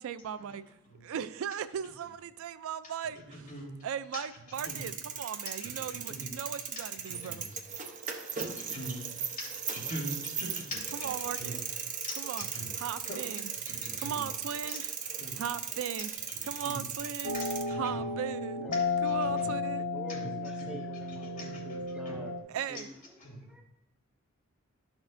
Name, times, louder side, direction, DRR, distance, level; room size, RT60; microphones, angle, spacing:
voice 1, 0.0-0.7 1.0-3.5 3.8-7.5 10.9-11.6 12.2-12.5 12.7-15.0 15.4-17.4 17.7-18.6 19.0-19.9 22.5-22.9, right 8 dB, 70° right, 14 dB, 0.3 m, -38 dB
voice 2, 3.3-3.7 4.1-4.2 4.6-4.9 5.5-6.3 6.7-7.4 8.1-9.0 9.4-11.1 11.4-11.5 12.0-12.7 13.0-13.2 13.7-14.2 15.2-15.4 16.6-16.8 17.3-18.1 18.7-19.5 20.1-20.3 20.6-20.7 21.2-22.2 23.2-23.4, equal, 40° left, -4 dB, 3.0 m, -43 dB
sound 1, 4.5-17.6, right 7 dB, 35° right, 0.7 m, -38 dB
sound 2, 17.2-22.4, left 3 dB, 70° left, 0.8 m, -33 dB
voice 3, 19.9-23.6, equal, 5° right, 0 dB, 0.5 m, -48 dB
12.0 x 6.2 x 2.6 m, 0.90 s
head